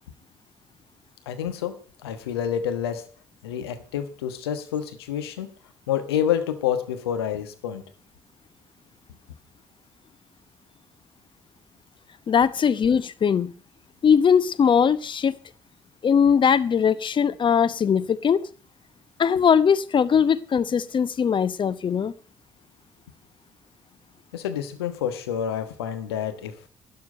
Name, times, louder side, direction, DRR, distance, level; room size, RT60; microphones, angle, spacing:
voice 1, 1.2-3.1 3.4-5.5 5.9-7.8 24.3-26.6, left 9 dB, 80° left, 9 dB, 1.3 m, -28 dB
voice 2, 12.3-13.5 14.0-15.4 16.0-18.4 19.2-22.1, left 7 dB, 40° left, 17 dB, 0.9 m, -20 dB
12.0 x 10.5 x 5.3 m, 0.41 s
figure-of-eight pair, 45°, 13 cm